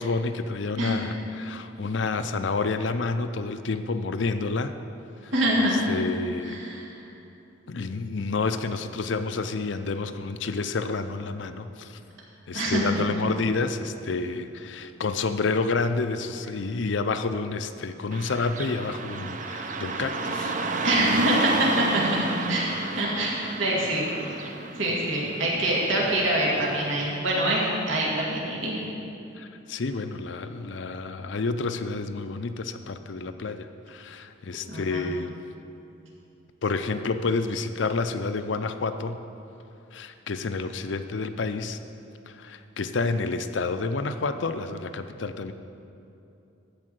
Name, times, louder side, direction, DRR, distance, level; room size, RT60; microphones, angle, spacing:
voice 1, 0.0-4.8 5.2-5.3 5.9-6.6 7.7-12.0 12.5-20.6 29.4-35.3 36.6-39.2 39.9-41.8 42.3-45.5, left 3 dB, 70° left, 10 dB, 0.5 m, -29 dB
voice 2, 5.3-5.8 6.4-6.9 12.5-12.8 20.8-24.0 24.4-24.5 24.8-28.8 34.7-35.1, right 1 dB, 90° right, -4 dB, 2.2 m, -25 dB
Car passing by / Traffic noise roadway noise, 18.1-27.1, right 3 dB, 40° right, 0.6 m, -32 dB
14.0 x 4.7 x 7.7 m, 2.7 s
head